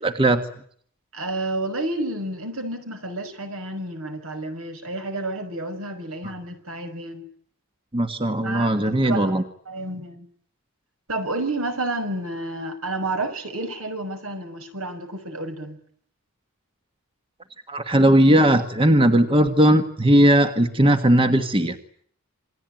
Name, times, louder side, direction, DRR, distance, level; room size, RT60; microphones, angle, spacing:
voice 1, 0.0-0.4 7.9-9.4 17.7-21.8, right 1 dB, 25° right, 7 dB, 1.5 m, -18 dB
voice 2, 1.1-7.2 8.4-9.4 9.7-10.3 11.1-15.8, right 2 dB, 70° right, 7 dB, 5.7 m, -30 dB
28.0 x 20.5 x 9.2 m, 0.63 s
head